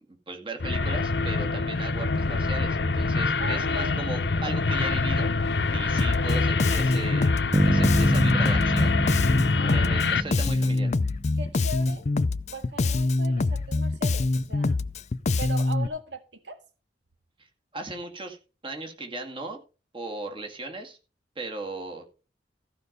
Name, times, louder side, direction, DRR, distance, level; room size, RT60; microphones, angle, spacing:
voice 1, 0.3-8.9 9.7-10.9 17.4-17.5 17.7-18.4 18.6-19.6 19.9-21.0 21.4-22.0, right 2 dB, 30° right, 2.1 m, -37 dB
sound 1, 0.6-10.2, left 3 dB, 70° left, 0.8 m, -25 dB
voice 2, 3.4-4.1 9.4-9.9 11.3-12.0 12.5-14.8 15.4-16.6, right 1 dB, 90° right, 1.9 m, -39 dB
Bass guitar, 6.0-15.9, left 3 dB, 40° left, 0.5 m, -25 dB
sound 2, 7.5-11.5, right 1 dB, 15° right, 0.4 m, -27 dB
15.0 x 5.2 x 6.7 m
head